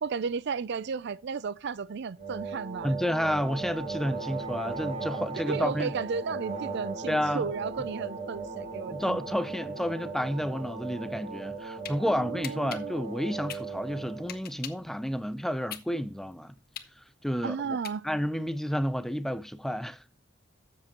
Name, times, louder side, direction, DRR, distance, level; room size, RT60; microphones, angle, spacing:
voice 1, 0.0-2.9 5.3-9.2 12.0-13.0 17.4-18.1, right 5 dB, 60° right, 0.4 m, -34 dB
sound 1, 2.2-14.4, right 4 dB, 35° right, 3.0 m, -37 dB
voice 2, 2.8-5.9 7.1-7.5 8.9-16.5 17.2-17.8 18.0-20.0, equal, ahead, 0.5 m, -30 dB
sound 2, 11.5-12.0 12.4-14.9 15.3-18.4, left 10 dB, 50° left, 1.0 m, -42 dB
13.0 x 7.5 x 2.9 m
head